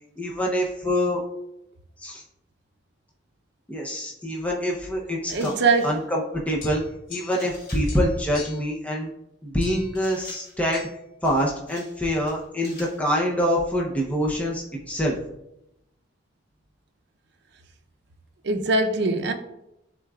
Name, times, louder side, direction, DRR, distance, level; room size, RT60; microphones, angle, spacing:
voice 1, 0.2-1.2 2.0-2.2 3.7-5.5 5.8-6.8 7.1-9.1 9.4-10.8 11.2-15.2, equal, 10° left, 0.6 m, -25 dB
sound 1, 5.3-6.0 7.3-8.0 9.9-10.6 11.2-12.0 12.3-13.0, left 2 dB, 50° left, 2.2 m, -47 dB
voice 2, 5.3-6.0 18.4-19.3, right 3 dB, 60° right, 0.6 m, -22 dB
sound 2, 6.6-7.6 7.8-8.7 9.6-10.0 10.7-10.9, left 6 dB, 90° left, 1.2 m, -42 dB
11.0 x 3.7 x 2.3 m
head